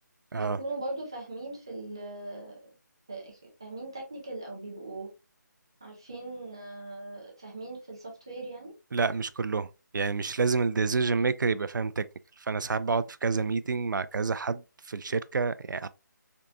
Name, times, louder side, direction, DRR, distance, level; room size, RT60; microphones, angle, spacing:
voice 1, 0.4-2.6 3.1-5.1 5.8-8.7, right 2 dB, 15° right, 0.5 m, -39 dB
voice 2, 8.9-12.1 12.4-15.9, right 4 dB, 80° right, 0.4 m, -28 dB
3.8 x 3.5 x 2.3 m
hypercardioid pair, 180°, 10 cm